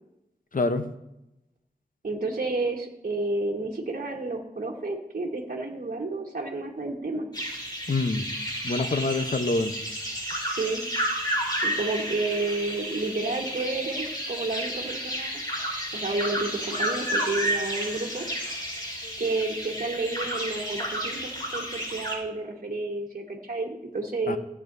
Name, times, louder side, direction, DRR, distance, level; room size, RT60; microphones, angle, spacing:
voice 1, 0.5-0.9 7.9-8.3 8.6-9.7 19.0-19.1 24.3-24.4, left 3 dB, 55° left, 9 dB, 0.9 m, -26 dB
voice 2, 2.0-7.3 10.4-10.8 11.6-15.4 15.9-18.2 19.2-24.4, right 2 dB, 55° right, -3 dB, 1.4 m, -31 dB
sound 1, 7.3-22.1, equal, 25° left, 4.7 m, -31 dB
16.5 x 8.5 x 2.7 m, 0.90 s
cardioid pair, 45°, 17 cm